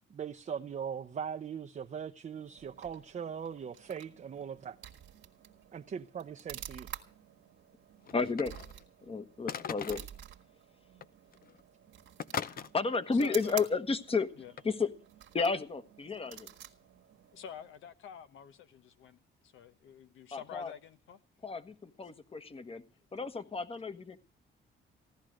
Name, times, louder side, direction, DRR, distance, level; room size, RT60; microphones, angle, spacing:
voice 1, 0.1-4.8 5.7-6.9, right 7 dB, 40° right, 0.7 m, -40 dB
sound 1, 2.3-17.9, right 11 dB, 90° right, 1.5 m, -50 dB
sound 2, 8.0-8.8 9.5-10.2 11.0-11.1 11.3-11.6 12.2-12.7 14.6-14.7, left 7 dB, 45° left, 0.7 m, -39 dB
voice 2, 8.1-8.5 9.0-10.0 12.7-14.3 14.6-14.9 15.3-16.5 20.3-20.7 21.4-22.8 23.1-24.2, left 4 dB, 30° left, 1.3 m, -32 dB
voice 3, 13.1-13.7 14.4-14.5 17.3-21.2, left 8 dB, 80° left, 1.2 m, -48 dB
16.0 x 11.5 x 6.4 m
cardioid pair, 90°, 20 cm